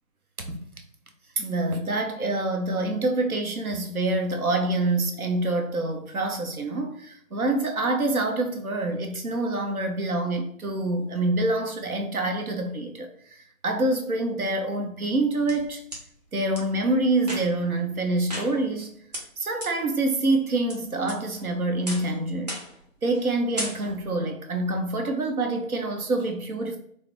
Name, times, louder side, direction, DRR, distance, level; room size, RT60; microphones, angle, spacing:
voice 1, 1.4-15.8 16.3-18.9 19.4-22.6 23.0-26.8, right 2 dB, 85° right, 0.8 m, -26 dB
sound 1, 15.1-16.0 16.5-16.6 17.2-17.7 18.3-18.8 19.1-19.2 19.6-19.7 20.2-20.7 21.1-21.5 21.9-22.1 22.5-22.8 23.1-23.3 23.6-24.1, right 1 dB, 30° right, 0.7 m, -35 dB
4.7 x 2.1 x 3.0 m
figure-of-eight pair, 150°, 42 cm